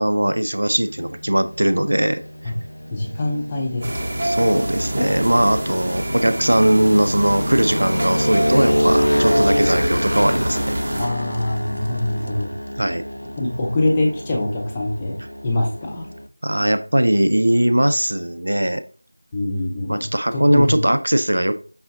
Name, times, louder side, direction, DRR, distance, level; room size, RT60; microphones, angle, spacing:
voice 1, 0.0-2.2 4.2-10.7 12.8-13.0 16.4-18.8 19.9-21.6, right 1 dB, 55° right, 11 dB, 0.4 m, -19 dB
sound 1, 0.7-16.3, equal, 80° left, 0.4 m, -26 dB
voice 2, 2.9-4.2 11.0-12.5 13.4-15.2 15.4-16.1 19.3-20.1 20.3-20.8, left 2 dB, 10° left, -2 dB, 0.5 m, -24 dB
sound 2, 3.8-11.1, right 1 dB, 25° right, 0.7 m, -26 dB
5.5 x 3.6 x 2.6 m, 0.40 s
figure-of-eight pair, 170°, 0 cm